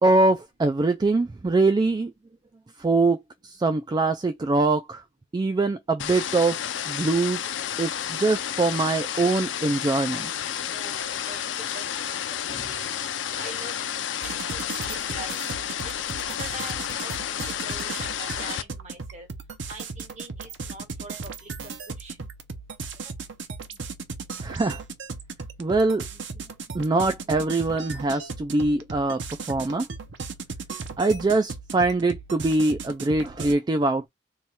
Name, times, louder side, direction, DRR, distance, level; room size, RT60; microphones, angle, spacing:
voice 1, 0.0-2.1 2.8-5.0 5.3-6.6 6.9-7.5 7.8-10.3 24.4-24.8 25.6-26.0 26.7-29.2 29.5-29.9 31.0-34.1, right 2 dB, 25° right, 0.3 m, -23 dB
sound 1, 6.0-18.6, left 9 dB, 75° left, 0.5 m, -31 dB
voice 2, 10.7-13.0 13.3-15.9 16.3-19.3 19.7-22.3, right 1 dB, 40° right, 1.4 m, -44 dB
sound 2, 12.5-14.0 16.5-17.1, left 1 dB, 25° left, 1.3 m, -49 dB
sound 3, 14.2-33.5, right 4 dB, 75° right, 0.7 m, -37 dB
3.1 x 2.3 x 4.2 m
head